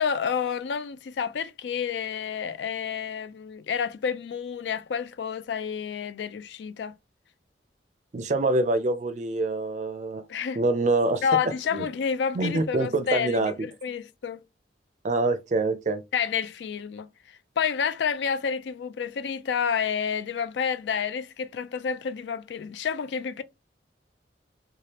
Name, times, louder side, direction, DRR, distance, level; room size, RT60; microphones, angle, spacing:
voice 1, 0.0-6.9 10.3-10.6 11.2-14.4 16.1-17.1 17.6-23.4, left 7 dB, 70° left, 0.4 m, -29 dB
voice 2, 8.1-10.2 10.6-11.2 11.7-11.9 12.3-13.7 15.0-16.0, right 2 dB, 40° right, 0.4 m, -25 dB
3.3 x 2.3 x 2.8 m
head